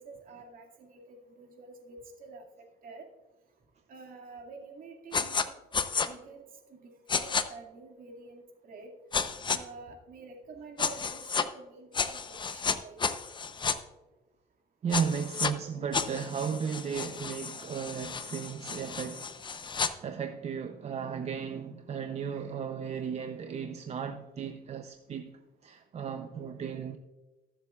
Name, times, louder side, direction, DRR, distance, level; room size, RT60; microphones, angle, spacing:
voice 1, 0.0-3.1 3.9-5.6 6.0-8.9 9.5-13.0, right 4 dB, 55° right, 2.1 m, -48 dB
sound 1, 5.1-5.5 5.7-6.1 7.1-7.4 9.1-9.6 10.8-11.5 11.9-13.8 14.9-15.5 15.9-19.9, left 5 dB, 30° left, 0.7 m, -32 dB
voice 2, 14.8-27.0, right 7 dB, 40° right, 0.6 m, -35 dB
21.5 x 7.6 x 2.4 m
cardioid pair, 110°, 17 cm